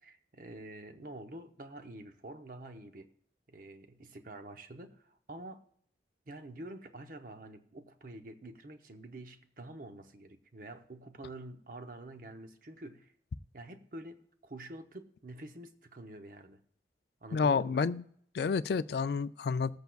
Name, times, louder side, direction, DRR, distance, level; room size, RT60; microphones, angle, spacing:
voice 1, 0.0-3.1 3.5-5.6 6.3-13.1 13.5-16.6 17.2-17.8, right 1 dB, 50° right, 0.8 m, -47 dB
voice 2, 17.3-18.0 18.3-19.8, left 5 dB, 60° left, 0.3 m, -29 dB
20.5 x 8.0 x 2.4 m
head